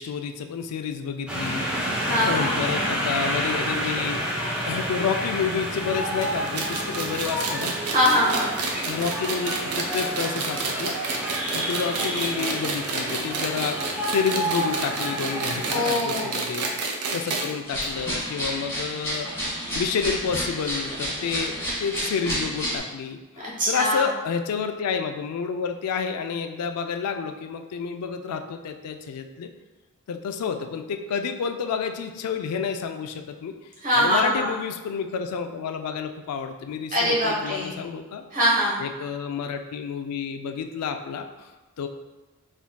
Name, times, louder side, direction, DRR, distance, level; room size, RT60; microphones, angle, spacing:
voice 1, 0.0-4.2 4.7-7.8 8.9-16.7 17.1-19.3 19.7-29.5 30.1-33.5 33.9-38.2 38.8-41.5 41.8-41.9, left 6 dB, 90° left, 6 dB, 0.3 m, -30 dB
sound 1, 1.3-15.9, equal, 5° right, 0.5 m, -29 dB
voice 2, 2.0-2.7 7.9-8.5 15.7-16.3 23.4-24.1 33.8-34.5 36.9-37.7 38.3-38.8, equal, 35° right, -5 dB, 1.1 m, -23 dB
sound 2, 6.2-17.5 17.8-17.9 18.2-18.3 19.1-19.2, right 4 dB, 85° right, 0.5 m, -30 dB
sound 3, 17.7-22.8, equal, 10° left, 1.5 m, -30 dB
3.6 x 3.5 x 2.2 m, 1.2 s
head